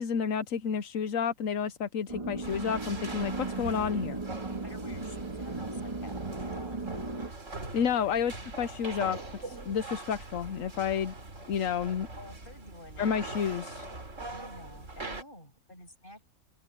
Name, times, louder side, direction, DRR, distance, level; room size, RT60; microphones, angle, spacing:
voice 1, 0.0-4.2 7.7-9.2 9.4-11.1 11.5-12.1 13.0-13.8, left 7 dB, 55° left, 1.0 m, -30 dB
sound 1, 2.1-7.3, right 3 dB, 15° right, 1.6 m, -37 dB
sound 2, 2.4-15.2, right 2 dB, 40° right, 3.5 m, -42 dB
voice 2, 4.5-7.1 7.7-8.2 12.1-13.2 14.3-16.2, left 1 dB, 25° left, 7.7 m, -49 dB
open air
omnidirectional pair, 2.0 m